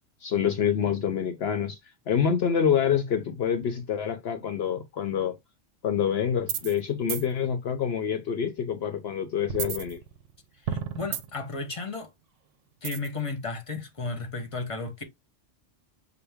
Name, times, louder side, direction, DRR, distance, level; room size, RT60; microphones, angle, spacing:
voice 1, 0.2-1.8 2.1-5.4 5.8-10.0, left 8 dB, 65° left, 0.7 m, -26 dB
sound 1, 6.4-6.8 7.1-7.3 9.5-10.4 10.7-11.5 12.8-13.2, right 8 dB, 80° right, 1.0 m, -32 dB
voice 2, 10.6-12.1 12.8-15.0, left 3 dB, 30° left, 0.8 m, -34 dB
5.7 x 2.2 x 3.4 m
omnidirectional pair, 1.3 m